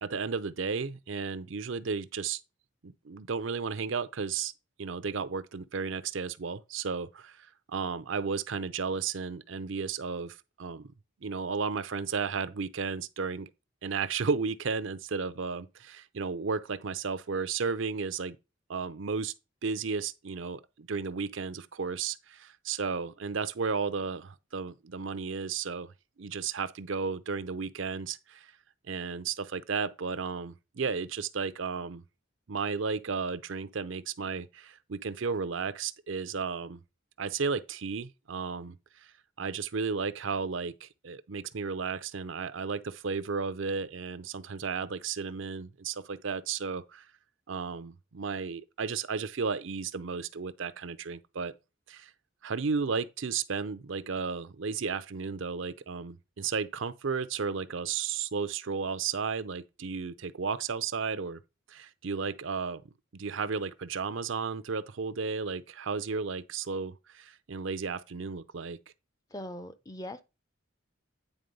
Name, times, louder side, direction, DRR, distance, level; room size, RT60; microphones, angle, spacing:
voice 1, 0.0-2.4 2.8-4.5 4.8-10.9 11.2-13.5 13.8-18.4 18.7-19.3 19.6-25.9 26.2-28.5 28.9-32.0 32.5-36.8 37.2-39.1 39.4-47.1 47.5-51.5 51.9-52.1 52.4-61.4 61.7-62.8 63.1-68.8, right 5 dB, 70° right, 0.6 m, -33 dB
voice 2, 69.3-70.2, left 1 dB, 15° left, 0.5 m, -40 dB
9.2 x 3.5 x 5.3 m
head